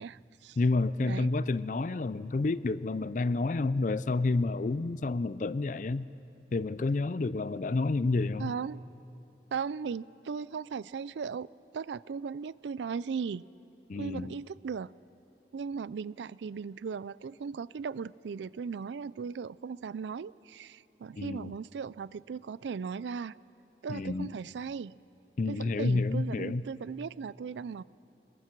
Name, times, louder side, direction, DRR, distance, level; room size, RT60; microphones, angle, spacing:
voice 1, 0.0-0.6 1.0-1.3 8.4-8.8 9.5-11.5 11.7-13.4 14.0-14.9 15.5-23.3 23.8-25.0 25.5-27.8, right 6 dB, 80° right, 20 dB, 0.4 m, -37 dB
voice 2, 0.6-6.1 6.5-8.5 13.9-14.3 21.2-21.5 23.9-24.3 25.4-26.6, left 3 dB, 45° left, 17 dB, 0.4 m, -29 dB
27.5 x 21.5 x 4.6 m, 2.9 s
head